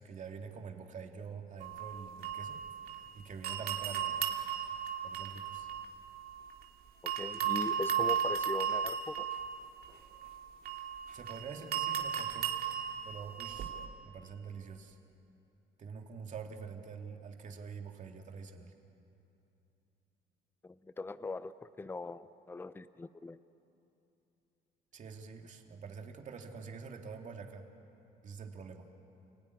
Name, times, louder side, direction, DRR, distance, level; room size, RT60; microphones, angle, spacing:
voice 1, 0.0-2.6 3.1-4.3 5.0-5.7 11.1-12.6 13.0-13.7 14.1-15.0 15.8-18.7 24.9-27.7 28.2-28.9, right 5 dB, 45° right, 3 dB, 2.7 m, -46 dB
sound 1, 1.6-3.1 3.4-6.7 7.1-13.9, right 8 dB, 60° right, 2.7 m, -36 dB
voice 2, 7.0-9.3 20.6-23.4, left 3 dB, 15° left, 14 dB, 0.7 m, -40 dB
29.0 x 18.0 x 9.9 m, 2.8 s
cardioid pair, 110°, 17 cm